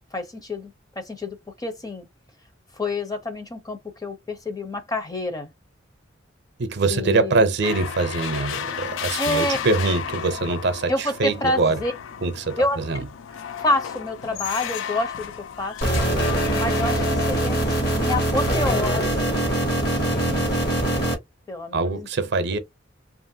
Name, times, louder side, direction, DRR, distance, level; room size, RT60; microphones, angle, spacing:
voice 1, 0.1-2.1 2.7-5.5 6.9-7.4 9.2-9.6 10.9-11.9 12.6-13.0 13.6-15.8 16.5-19.4 21.5-22.1, left 2 dB, 20° left, 0.6 m, -28 dB
voice 2, 6.6-11.8 12.2-13.1 20.0-20.5 21.7-22.6, right 3 dB, 60° right, 0.6 m, -24 dB
sound 1, 7.6-18.2, left 8 dB, 80° left, 0.4 m, -33 dB
sound 2, 15.8-21.1, right 1 dB, 55° left, 1.1 m, -23 dB
2.9 x 2.5 x 2.7 m
head